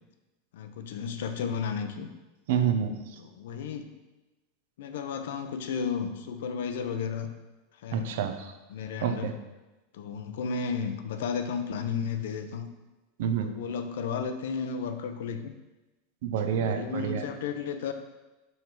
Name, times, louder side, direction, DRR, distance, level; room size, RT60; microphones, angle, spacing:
voice 1, 0.5-2.1 3.2-4.0 4.8-7.3 7.8-8.2 8.7-9.4 9.9-12.7 13.4-15.5 16.6-17.9, left 6 dB, 80° left, 8 dB, 0.6 m, -33 dB
voice 2, 2.5-2.9 7.9-8.5 9.0-9.3 13.2-13.5 16.2-17.3, right 8 dB, 70° right, 8 dB, 0.6 m, -28 dB
5.6 x 4.6 x 4.5 m, 1.1 s
supercardioid pair, 160°, 0 cm